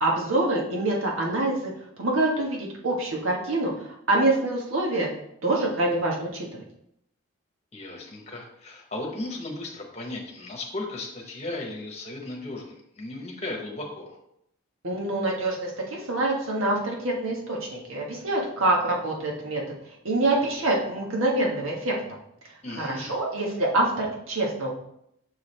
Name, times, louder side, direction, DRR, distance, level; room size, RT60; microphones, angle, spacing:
voice 1, 0.0-1.7 2.0-3.7 4.1-5.1 5.4-6.5 14.8-19.6 20.0-22.0 22.8-24.8, right 2 dB, 75° right, -1 dB, 1.5 m, -25 dB
voice 2, 7.7-14.2 22.6-23.2, left 2 dB, 30° left, 1 dB, 1.1 m, -36 dB
6.4 x 4.7 x 3.3 m, 0.75 s
head